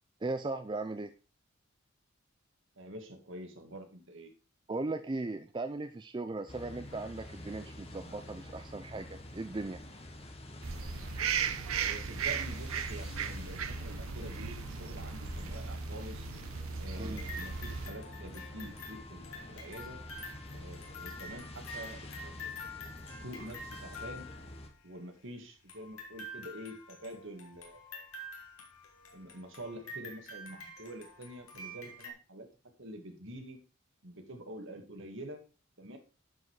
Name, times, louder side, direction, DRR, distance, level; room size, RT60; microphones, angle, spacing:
voice 1, 0.2-1.1 4.7-9.8 17.0-17.2, right 2 dB, 20° right, 9 dB, 0.4 m, -37 dB
voice 2, 2.8-4.3 11.8-16.3 16.8-20.0 20.5-22.5 23.0-24.3 24.8-28.1 29.1-32.5 32.8-33.6 34.0-35.4 35.8-36.0, right 1 dB, 60° right, 5 dB, 1.9 m, -46 dB
sound 1, 6.5-24.7, left 1 dB, 30° left, 1.2 m, -47 dB
sound 2, 10.6-17.9, right 6 dB, 80° right, 0.8 m, -37 dB
sound 3, 16.9-24.8 25.7-32.1, left 2 dB, 80° left, 2.7 m, -47 dB
11.0 x 5.3 x 4.7 m, 0.35 s
head